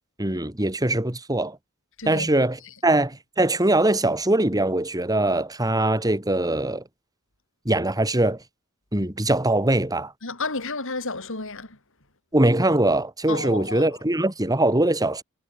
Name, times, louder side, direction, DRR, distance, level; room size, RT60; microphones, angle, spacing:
voice 1, 0.2-1.6 2.0-6.8 7.7-8.4 8.9-10.1 12.3-15.2, right 1 dB, 15° right, 2.6 m, -22 dB
voice 2, 10.2-11.7 13.3-13.9, left 3 dB, 60° left, 6.5 m, -31 dB
head